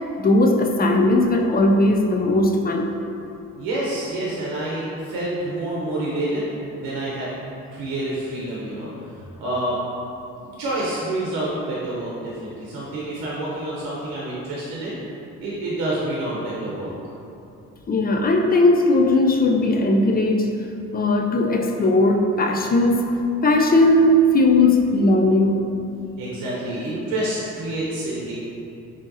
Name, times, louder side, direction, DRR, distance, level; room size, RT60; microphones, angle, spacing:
voice 1, 0.2-2.9 17.9-20.5 20.9-23.1 23.4-25.6, left 2 dB, 30° left, 3 dB, 0.4 m, -18 dB
voice 2, 3.5-6.4 6.8-7.3 7.7-8.9 9.4-9.8 10.4-15.0 15.4-16.9 26.2-28.3, right 1 dB, 85° right, -6 dB, 0.7 m, -28 dB
4.4 x 2.9 x 2.7 m, 2.7 s
supercardioid pair, 60°, 34 cm